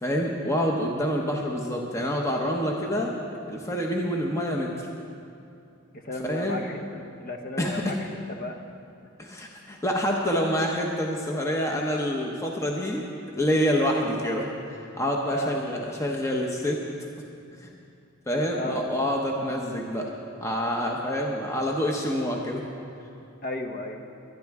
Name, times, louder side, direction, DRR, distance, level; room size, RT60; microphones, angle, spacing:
voice 1, 0.0-3.1 3.5-4.7 6.2-6.6 7.6-8.0 9.2-14.5 15.0-16.8 17.6-17.7 18.3-20.1 20.4-22.6, equal, 15° left, 0 dB, 0.8 m, -27 dB
voice 2, 5.9-8.0 8.4-8.6 15.3-16.0 18.5-18.8 23.4-24.0, left 1 dB, 45° left, 5 dB, 1.0 m, -34 dB
22.5 x 10.5 x 3.6 m, 2.6 s
head